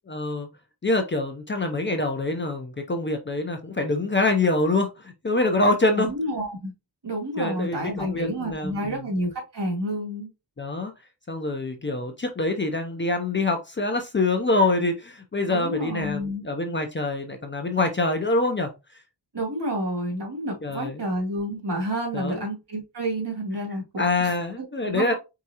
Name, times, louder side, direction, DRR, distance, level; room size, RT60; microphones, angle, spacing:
voice 1, 0.1-0.5 0.8-6.1 7.4-9.0 10.6-10.9 11.3-18.7 20.6-21.0 22.1-22.4 24.0-25.1, left 2 dB, 25° left, 0.6 m, -25 dB
voice 2, 5.9-6.7 7.0-10.3 15.5-16.4 19.3-25.1, right 1 dB, 65° right, 2.3 m, -30 dB
4.8 x 3.7 x 2.8 m
wide cardioid pair, 170°, 44 cm